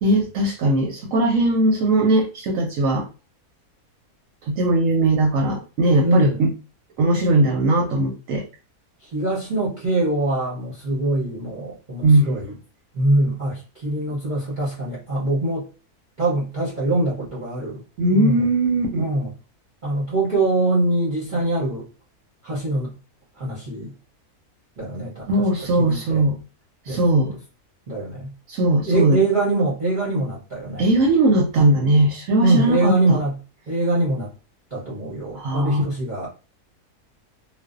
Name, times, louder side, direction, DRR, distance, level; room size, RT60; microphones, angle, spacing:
voice 1, 0.0-3.1 4.5-6.5 7.0-8.4 12.0-12.4 18.0-19.1 25.3-26.4 26.9-27.3 28.5-29.2 30.8-33.2 35.3-35.8, right 1 dB, 70° right, 0.9 m, -19 dB
voice 2, 6.0-6.5 9.0-12.5 12.9-15.7 16.2-17.8 18.1-18.5 19.0-19.3 19.8-21.9 22.4-22.9 23.4-23.9 24.8-25.4 25.8-26.2 26.9-27.0 27.3-27.4 27.9-28.3 28.9-30.9 32.4-33.4 33.7-34.3 34.7-36.3, right 2 dB, 45° right, 0.7 m, -23 dB
2.5 x 2.1 x 2.4 m
omnidirectional pair, 1.6 m